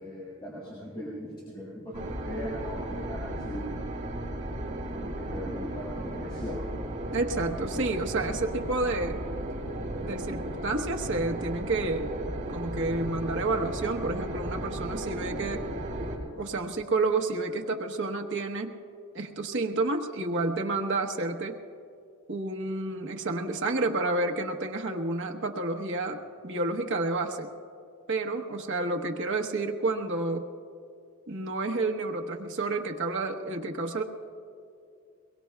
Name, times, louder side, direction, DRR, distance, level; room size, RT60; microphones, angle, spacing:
voice 1, 0.0-3.8 4.9-6.6 7.7-7.9, equal, 20° left, -8 dB, 4.8 m, -39 dB
sound 1, 1.9-16.2, right 1 dB, 40° right, 4.3 m, -35 dB
voice 2, 7.1-9.2 10.0-12.1 12.5-15.7 16.4-18.8 19.1-21.6 22.3-27.5 28.1-30.5 31.3-34.0, right 2 dB, 60° right, 3 dB, 1.1 m, -30 dB
22.5 x 22.0 x 2.3 m, 2.4 s
head